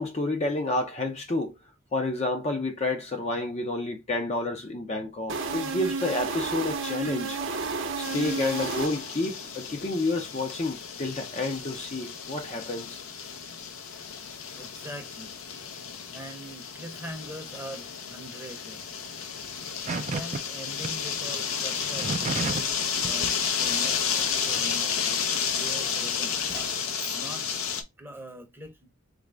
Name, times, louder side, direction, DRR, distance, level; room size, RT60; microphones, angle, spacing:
voice 1, 0.0-1.5 1.9-7.4 8.0-13.0, left 2 dB, 30° left, 0.5 m, -30 dB
sound 1, 5.3-9.4, right 4 dB, 65° right, 0.7 m, -32 dB
sound 2, 8.0-27.8, left 7 dB, 85° left, 0.7 m, -32 dB
voice 2, 14.5-15.4 16.1-18.9 19.8-25.1 25.5-27.5 28.0-28.9, right 1 dB, 10° right, 0.7 m, -43 dB
sound 3, 19.9-20.4 20.8-20.9 21.8-22.8 23.0-23.3, right 4 dB, 35° right, 0.3 m, -31 dB
4.0 x 2.5 x 3.3 m
head